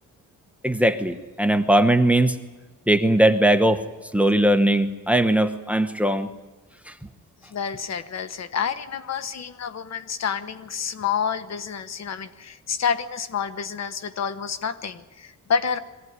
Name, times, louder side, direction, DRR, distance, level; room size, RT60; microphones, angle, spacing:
voice 1, 0.6-2.4 2.9-3.8 4.1-6.3, right 1 dB, 5° right, 9 dB, 1.1 m, -19 dB
voice 2, 7.5-15.8, left 7 dB, 55° left, 12 dB, 1.1 m, -28 dB
22.5 x 16.5 x 9.6 m, 1.3 s
wide cardioid pair, 140°, 31 cm